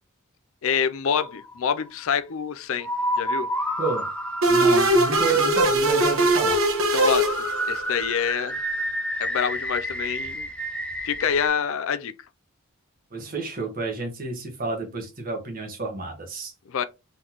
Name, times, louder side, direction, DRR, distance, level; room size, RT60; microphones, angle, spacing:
voice 1, 0.6-2.9 3.2-3.5 6.9-7.3 7.7-8.6 9.2-10.5 11.0-12.1 16.7-16.8, left 7 dB, 65° left, 0.4 m, -26 dB
sound 1, 1.1-1.9 2.8-6.8 7.2-11.5, equal, 5° left, 0.4 m, -30 dB
sound 2, 4.4-8.0, right 2 dB, 65° right, 1.2 m, -20 dB
voice 2, 4.5-6.6 13.1-16.5, right 3 dB, 40° right, 1.4 m, -31 dB
3.9 x 3.8 x 2.9 m
head